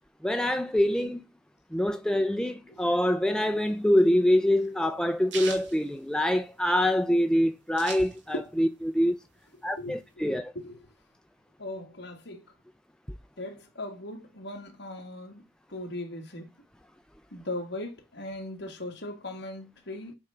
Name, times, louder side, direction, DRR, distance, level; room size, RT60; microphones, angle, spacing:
voice 1, 0.2-1.3 1.7-9.1 9.6-10.5, left 1 dB, 5° left, 0.5 m, -25 dB
sound 1, 3.6-6.7 7.1-7.2 7.3-8.6 9.0-10.1, right 5 dB, 65° right, 2.2 m, -41 dB
voice 2, 11.6-12.5 13.4-15.4 15.7-16.5 17.3-20.2, left 1 dB, 60° left, 1.9 m, -38 dB
7.9 x 3.7 x 5.7 m
head